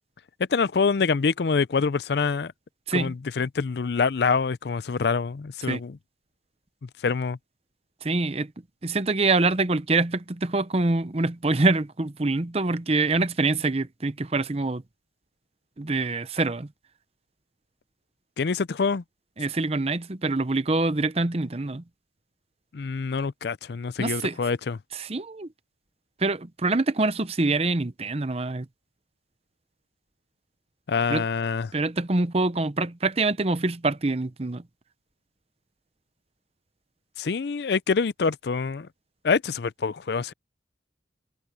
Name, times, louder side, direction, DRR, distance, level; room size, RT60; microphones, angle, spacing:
voice 1, 0.5-2.5 2.9-6.0 7.0-7.4 18.4-19.0 22.7-24.8 30.9-31.7 37.2-38.9 39.2-40.3, left 5 dB, 60° left, 0.5 m, -25 dB
voice 2, 8.0-8.5 8.8-14.8 15.8-16.7 19.4-21.8 24.0-24.4 24.9-25.5 26.2-28.7 31.1-31.2 31.7-34.6, right 3 dB, 35° right, 0.8 m, -25 dB
head